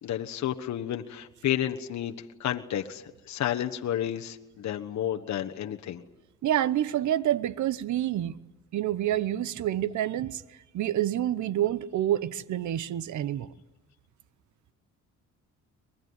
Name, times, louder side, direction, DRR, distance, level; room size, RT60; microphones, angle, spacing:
voice 1, 0.0-6.0, left 11 dB, 65° left, 1.3 m, -31 dB
voice 2, 6.4-8.4 8.7-10.4 10.7-13.5, right 12 dB, 70° right, 1.0 m, -28 dB
23.5 x 21.0 x 9.6 m
cardioid pair, 90°, 30 cm